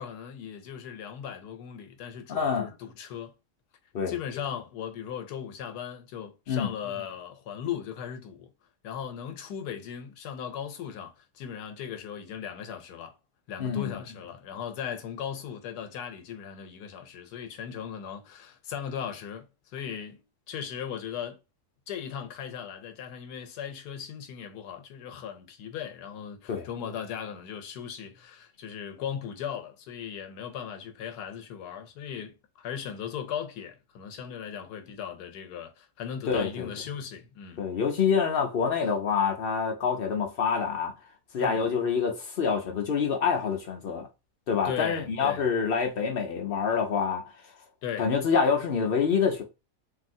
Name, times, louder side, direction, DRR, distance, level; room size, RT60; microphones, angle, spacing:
voice 1, 0.0-3.3 4.1-8.5 8.8-13.1 13.5-19.5 19.7-20.2 20.5-21.4 21.9-37.7 41.4-41.7 44.6-45.4 47.8-48.1, left 8 dB, 85° left, 1.2 m, -37 dB
voice 2, 2.3-2.7 3.9-4.1 6.5-6.7 13.6-13.9 26.5-26.7 36.3-36.7 37.6-40.9 41.3-44.1 44.5-47.2 48.0-49.4, left 6 dB, 65° left, 0.5 m, -26 dB
3.1 x 2.7 x 2.6 m
omnidirectional pair, 1.7 m